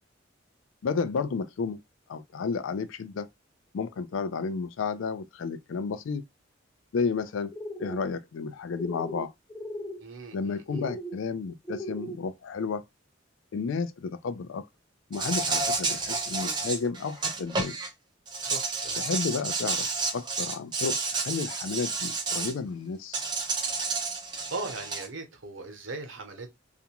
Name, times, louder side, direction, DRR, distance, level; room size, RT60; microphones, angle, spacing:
voice 1, 0.8-1.8 2.1-3.3 3.7-6.2 6.9-7.5 7.8-9.3 10.3-12.8 13.5-14.6 15.1-17.8 19.0-19.9 20.1-23.2, left 5 dB, 85° left, 0.4 m, -32 dB
sound 1, 7.5-8.0 8.7-9.2 9.5-10.0 10.7-11.1 11.6-12.2, equal, 15° left, 0.6 m, -37 dB
voice 2, 10.0-10.9 18.4-19.0 24.5-26.5, right 3 dB, 75° right, 0.8 m, -39 dB
Insect, 15.1-17.9 18.3-22.5 23.1-25.1, right 4 dB, 25° right, 0.6 m, -30 dB
2.5 x 2.2 x 2.8 m
head